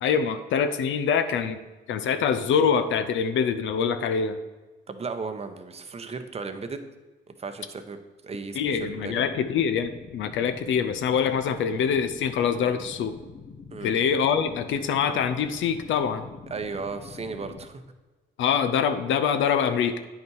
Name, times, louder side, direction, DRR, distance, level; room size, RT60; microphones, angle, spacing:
voice 1, 0.0-1.6 1.9-4.4 8.5-13.1 13.8-16.3 18.4-20.0, left 7 dB, 75° left, 9 dB, 0.6 m, -24 dB
voice 2, 4.9-6.8 7.3-8.0 8.2-9.2 13.7-13.9 16.5-17.7, right 4 dB, 30° right, 8 dB, 0.9 m, -35 dB
sound 1, 8.6-17.7, left 5 dB, 55° left, 0.9 m, -45 dB
8.8 x 5.6 x 4.7 m, 1.2 s
cardioid pair, 90°, 20 cm